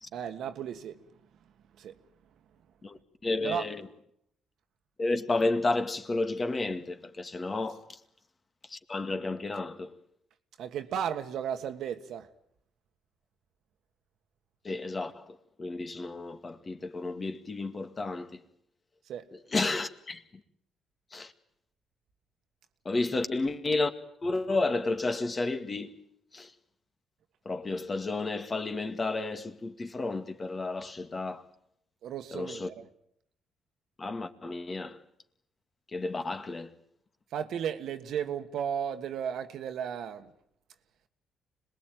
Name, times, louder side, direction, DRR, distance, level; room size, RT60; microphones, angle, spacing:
voice 1, 0.1-1.0 1.8-1.9 3.4-3.7 10.6-12.3 19.1-19.3 32.0-32.8 37.3-40.3, right 8 dB, 75° right, 1.6 m, -34 dB
voice 2, 2.8-3.9 5.0-7.9 8.7-10.0 14.6-18.4 19.5-20.2 21.1-21.3 22.9-23.9 24.2-25.9 26.3-26.5 27.5-31.4 32.3-32.7 34.0-35.0 35.9-36.7, left 3 dB, 30° left, 2.0 m, -32 dB
26.0 x 20.5 x 9.2 m
cardioid pair, 90°, 0 cm